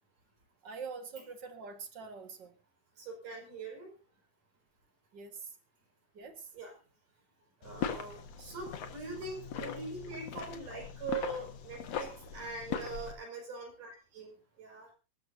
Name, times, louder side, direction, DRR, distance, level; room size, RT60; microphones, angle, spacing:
voice 1, 0.6-2.5 5.1-5.6 6.1-6.5, right 5 dB, 40° right, 7 dB, 1.9 m, -44 dB
voice 2, 3.0-3.9 6.5-6.7 7.6-14.9, right 3 dB, 70° right, 0 dB, 7.2 m, -42 dB
sound 1, 7.6-13.1, left 7 dB, 55° left, 2.4 m, -40 dB
25.5 x 12.5 x 2.7 m, 0.32 s
omnidirectional pair, 3.8 m